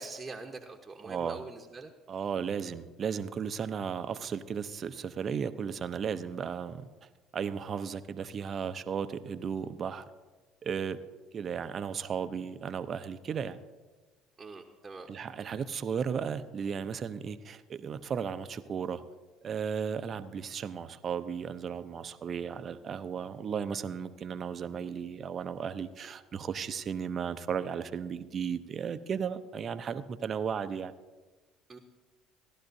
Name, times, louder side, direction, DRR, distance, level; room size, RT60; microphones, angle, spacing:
voice 1, 0.0-1.9 14.4-15.1 31.7-31.8, right 3 dB, 25° right, 2 dB, 1.0 m, -43 dB
voice 2, 1.0-1.4 2.1-6.9 7.3-10.1 10.6-11.0 11.3-13.6 15.1-19.0 19.4-30.9, right 7 dB, 45° right, 12 dB, 0.6 m, -35 dB
16.5 x 11.5 x 2.7 m, 1.3 s
hypercardioid pair, 75°, 0 cm